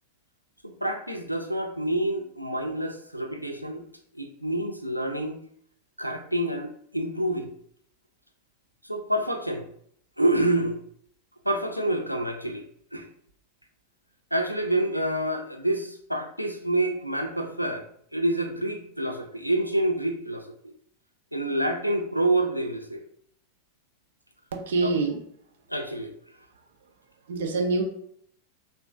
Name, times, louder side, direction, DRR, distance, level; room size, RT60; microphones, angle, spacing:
voice 1, 0.6-3.8 4.1-5.4 6.0-7.5 8.8-9.7 10.2-10.8 11.4-12.7 12.9-13.1 14.3-20.7 21.3-23.0 24.8-24.9 25.7-26.1, right 1 dB, 90° left, 5 dB, 0.3 m, -27 dB
voice 2, 24.5-25.2 27.3-27.8, right 3 dB, 60° right, 3 dB, 0.5 m, -25 dB
3.6 x 2.0 x 2.7 m, 0.67 s
figure-of-eight pair, 90°, 0 cm